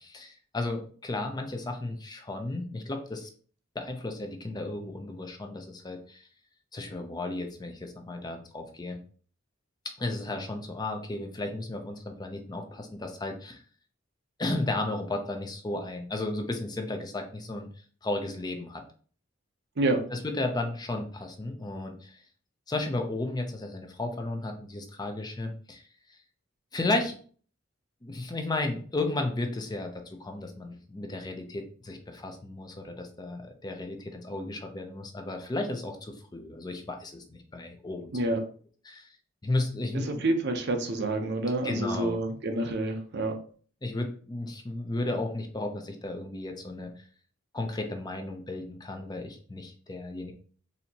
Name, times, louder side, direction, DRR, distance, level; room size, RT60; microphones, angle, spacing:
voice 1, 0.0-3.3 3.7-6.3 6.7-9.0 10.0-13.6 14.4-17.7 18.0-18.8 20.1-22.2 22.7-25.8 26.7-27.1 28.0-38.1 38.9-39.1 39.4-40.3 41.6-42.2 43.8-47.0 47.5-50.3, left 2 dB, 20° left, 5 dB, 0.5 m, -34 dB
voice 2, 39.9-43.4, right 2 dB, 60° right, 5 dB, 0.7 m, -28 dB
4.2 x 2.7 x 2.8 m, 0.44 s
head